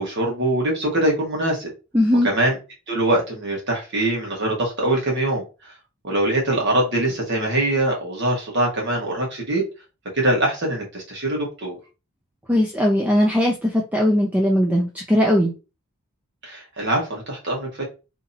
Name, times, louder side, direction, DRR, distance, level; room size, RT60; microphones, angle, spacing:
voice 1, 0.0-1.7 2.2-2.6 2.9-5.7 6.0-9.6 10.1-11.8 16.4-17.8, right 1 dB, 55° right, -1 dB, 1.3 m, -23 dB
voice 2, 1.9-2.3 12.5-15.5, left 1 dB, 5° right, -1 dB, 0.5 m, -19 dB
2.8 x 2.7 x 3.9 m, 0.29 s
head